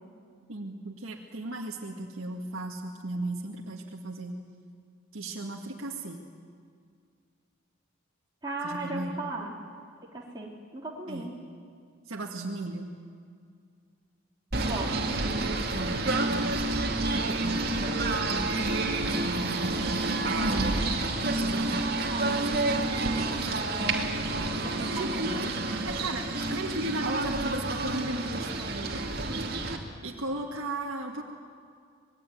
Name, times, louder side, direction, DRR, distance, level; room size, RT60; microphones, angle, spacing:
voice 1, 0.5-4.4 5.1-6.2 8.6-9.2 11.1-11.3 12.1-12.9 15.7-16.7 17.1-17.8 18.4-18.8 19.2-20.9 21.4-21.8 24.7-25.5 25.8-29.0 30.0-31.2, right 2 dB, 85° right, -1 dB, 2.0 m, -36 dB
voice 2, 8.4-9.5 10.1-11.3 14.6-15.1 22.1-22.4 23.0-23.9 24.6-25.4, right 2 dB, 20° right, -4 dB, 3.4 m, -37 dB
Singing / Bird, 14.5-29.8, right 2 dB, 50° right, 2.6 m, -29 dB
25.5 x 20.0 x 9.3 m, 2.2 s
head